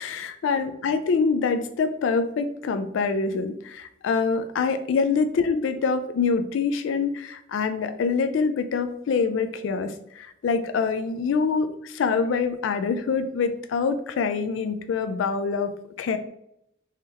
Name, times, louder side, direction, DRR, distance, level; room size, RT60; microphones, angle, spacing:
voice 1, 0.0-15.7 16.0-16.2, left 5 dB, 80° left, 9 dB, 0.3 m, -25 dB
3.6 x 3.2 x 2.9 m, 0.77 s
head